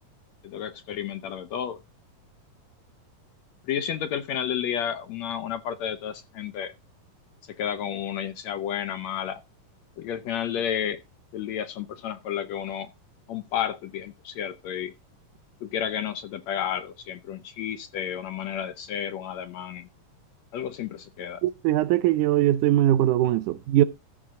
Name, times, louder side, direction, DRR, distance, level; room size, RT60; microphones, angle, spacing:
voice 1, 0.4-1.8 3.7-6.7 7.6-9.4 10.0-11.0 11.3-12.9 13.3-14.9 15.6-19.9 20.5-21.4, left 9 dB, 70° left, 1.8 m, -31 dB
voice 2, 21.4-23.8, right 13 dB, 75° right, 2.1 m, -21 dB
14.0 x 6.5 x 3.7 m
omnidirectional pair, 3.9 m